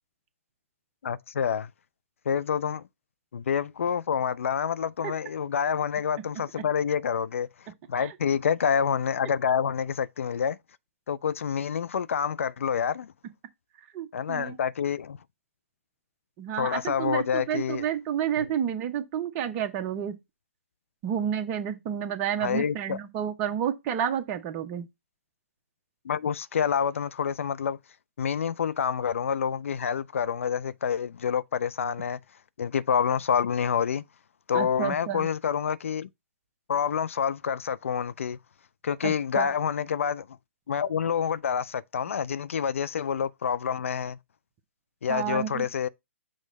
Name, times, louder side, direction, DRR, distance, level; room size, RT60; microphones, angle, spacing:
voice 1, 1.0-1.7 2.3-2.8 3.3-7.5 7.9-10.6 11.1-13.1 14.1-15.2 16.6-17.9 18.4-18.5 22.4-23.0 26.0-27.8 28.2-32.2 32.6-34.0 34.5-36.1 36.7-38.4 38.8-40.3 40.7-44.2 45.0-45.9, left 7 dB, 65° left, 0.4 m, -27 dB
voice 2, 13.9-14.6 16.4-20.2 21.0-24.9 34.5-35.3 39.0-39.5 45.1-45.7, right 9 dB, 30° right, 0.9 m, -30 dB
6.3 x 3.1 x 5.3 m
figure-of-eight pair, 130°, 8 cm